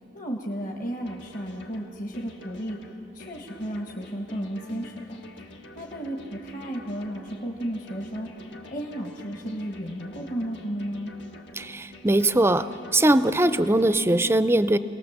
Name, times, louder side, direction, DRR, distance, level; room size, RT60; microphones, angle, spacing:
voice 1, 0.1-2.8 3.1-11.1, equal, 45° left, 0 dB, 1.5 m, -34 dB
sound 1, 1.1-14.0, left 1 dB, 80° left, 1.5 m, -47 dB
voice 2, 11.5-14.8, right 1 dB, 15° right, 13 dB, 0.5 m, -21 dB
26.5 x 18.5 x 7.3 m, 3.0 s
head